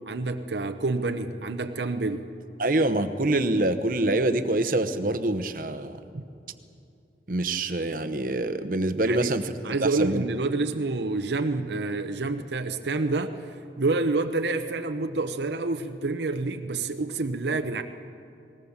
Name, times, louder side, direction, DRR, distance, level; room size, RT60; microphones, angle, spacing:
voice 1, 0.1-2.2 6.1-6.2 9.0-9.3 9.6-13.5 13.8-17.8, right 3 dB, 75° right, 7 dB, 0.8 m, -28 dB
voice 2, 2.6-6.0 7.3-9.5 9.8-10.2, right 2 dB, 50° right, 10 dB, 0.9 m, -25 dB
20.0 x 18.5 x 7.3 m, 2.5 s
head